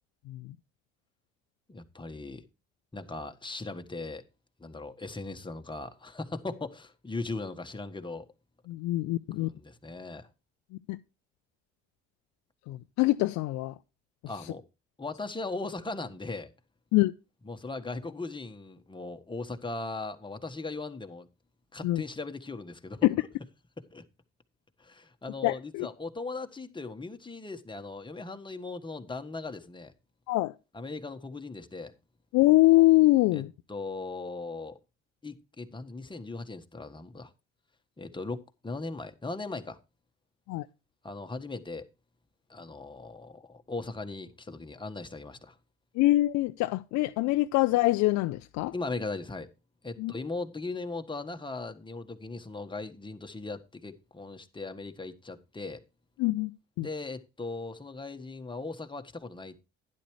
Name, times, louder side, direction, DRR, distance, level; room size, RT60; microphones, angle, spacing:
voice 1, 1.7-2.5 2.9-4.2 4.6-8.2 9.4-10.3 14.3-14.6 15.0-16.5 17.4-21.3 21.7-23.1 23.8-24.0 24.8-29.9 30.7-31.9 33.3-33.4 33.7-34.8 35.2-37.3 38.0-39.8 41.0-41.9 42.5-45.5 48.7-49.5 49.8-55.8 56.8-59.6, left 3 dB, 15° left, 1.5 m, -38 dB
voice 2, 8.7-9.5 10.9-11.0 12.7-13.7 16.9-17.1 21.8-22.0 25.4-25.9 30.3-30.5 32.3-33.5 40.5-40.7 45.9-48.7 50.0-50.1 56.2-56.5 56.8-56.9, left 18 dB, 70° left, 0.6 m, -24 dB
11.5 x 11.0 x 3.2 m
hypercardioid pair, 65°, 29 cm